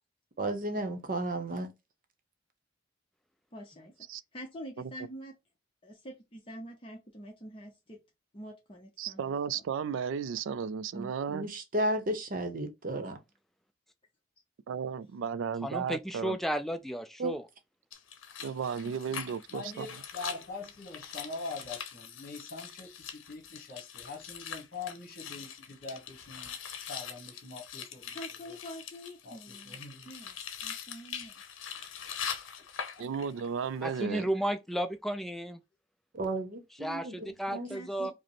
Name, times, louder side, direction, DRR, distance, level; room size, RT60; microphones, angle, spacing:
voice 1, 0.4-1.7 10.9-13.2 17.2-17.4 36.1-37.7 38.0-38.1, right 1 dB, 45° right, 0.8 m, -33 dB
voice 2, 3.5-3.9 4.3-5.3 5.8-8.0 8.3-9.6 18.8-19.8 28.1-29.8 30.0-31.6 37.5-38.1, equal, 25° left, 0.7 m, -47 dB
voice 3, 9.0-11.5 14.7-16.4 18.4-19.9 33.0-34.3, right 7 dB, 75° right, 0.3 m, -34 dB
voice 4, 15.6-17.4 33.8-35.6 36.8-38.1, right 1 dB, ahead, 0.4 m, -33 dB
sound 1, 17.9-33.5 33.8-34.0, left 7 dB, 80° left, 0.7 m, -43 dB
voice 5, 19.5-28.2 29.2-29.4 29.7-30.1 32.9-33.0, left 3 dB, 50° left, 1.3 m, -43 dB
5.0 x 2.0 x 3.0 m
head